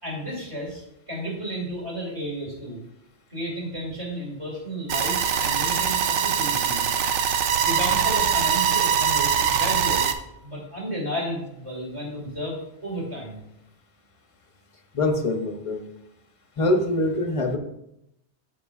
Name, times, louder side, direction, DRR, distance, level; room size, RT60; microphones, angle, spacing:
voice 1, 0.0-2.8 3.3-6.9 7.6-10.1 10.4-13.4, equal, 25° right, -3 dB, 2.7 m, -33 dB
sound 1, 4.9-10.1, right 8 dB, 85° right, 0.9 m, -22 dB
voice 2, 14.9-15.9 16.6-17.6, left 2 dB, 35° left, 5 dB, 0.7 m, -24 dB
13.0 x 4.7 x 2.4 m, 0.82 s
omnidirectional pair, 1.2 m